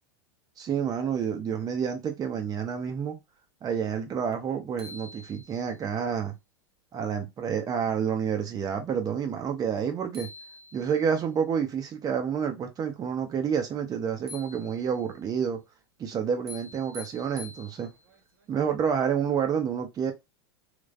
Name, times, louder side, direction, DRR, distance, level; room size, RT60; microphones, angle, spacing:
voice 1, 0.6-3.2 3.6-6.3 6.9-10.3 10.7-15.6 16.0-17.9 18.5-20.1, right 7 dB, 30° right, 0.8 m, -29 dB
sound 1, 4.3-4.4 4.8-5.9 9.8-9.9 10.1-11.2 14.3-15.2 16.5-18.2, left 2 dB, 65° right, 1.0 m, -47 dB
3.1 x 2.1 x 2.4 m
hypercardioid pair, 105°, 13 cm